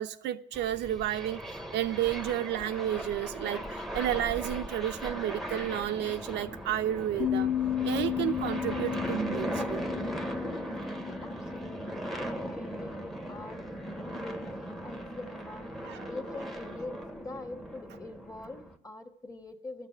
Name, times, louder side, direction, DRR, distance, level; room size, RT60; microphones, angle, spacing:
voice 1, 0.0-1.4 1.7-7.5 7.8-9.8 15.8-16.1, right 12 dB, 65° right, 0.6 m, -31 dB
sound 1, 0.5-18.8, right 1 dB, ahead, 1.0 m, -38 dB
sound 2, 7.2-12.3, left 11 dB, 70° left, 1.8 m, -34 dB
voice 2, 11.1-15.7 16.1-19.9, left 2 dB, 20° left, 1.5 m, -44 dB
12.5 x 6.7 x 9.3 m
cardioid pair, 105°, 19 cm